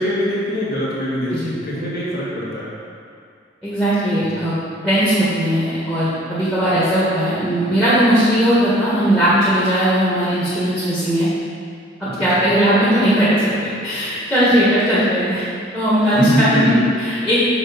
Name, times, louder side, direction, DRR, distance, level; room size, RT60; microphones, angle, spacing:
voice 1, 0.0-2.7 4.4-4.5 12.1-12.5 16.1-17.0, equal, 55° left, -7 dB, 2.3 m, -23 dB
voice 2, 3.6-4.5 4.8-11.3 12.2-15.4 15.7-17.4, equal, 5° left, -13 dB, 1.9 m, -18 dB
7.2 x 6.2 x 5.3 m, 2.3 s
head